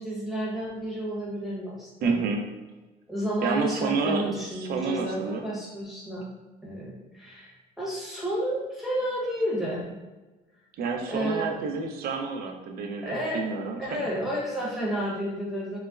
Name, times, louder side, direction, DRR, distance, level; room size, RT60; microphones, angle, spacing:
voice 1, 0.0-2.2 3.1-6.2 6.6-10.0 11.1-11.6 13.0-13.4 13.8-15.8, right 1 dB, ahead, -6 dB, 1.0 m, -31 dB
voice 2, 2.0-2.4 3.4-4.3 4.6-5.4 10.8-14.0, right 4 dB, 65° right, 3 dB, 0.5 m, -29 dB
3.8 x 2.1 x 2.3 m, 1.1 s
cardioid pair, 110°, 17 cm